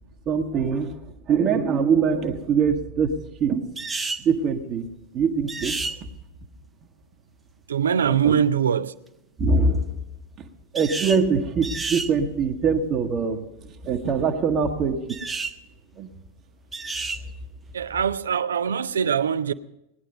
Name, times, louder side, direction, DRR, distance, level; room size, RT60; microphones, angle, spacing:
voice 1, 0.3-1.0 1.3-3.7 4.2-5.8 8.1-8.4 9.4-9.9 10.4-10.5 10.7-13.5 13.8-15.2 16.0-16.1, right 5 dB, 30° right, 1.1 m, -23 dB
sound 1, 3.8-4.3 5.5-6.0 10.8-11.2 11.6-12.1 15.1-15.6 16.7-17.2, right 3 dB, 10° right, 0.7 m, -30 dB
voice 2, 7.7-8.9 17.7-19.5, right 8 dB, 70° right, 0.4 m, -22 dB
18.5 x 10.0 x 5.3 m
figure-of-eight pair, 90°, 0 cm